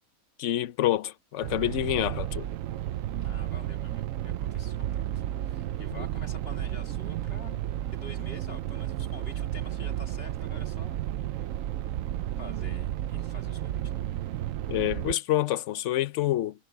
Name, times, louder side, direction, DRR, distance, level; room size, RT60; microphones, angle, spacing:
voice 1, 0.4-2.5 14.7-16.5, left 13 dB, 65° left, 1.0 m, -27 dB
Viral Suspended Terra, 1.4-15.1, right 12 dB, 70° right, 0.9 m, -32 dB
voice 2, 3.2-7.6 7.9-11.0 11.3-11.5 12.4-14.1, left 2 dB, 45° left, 2.2 m, -48 dB
omnidirectional pair, 1.5 m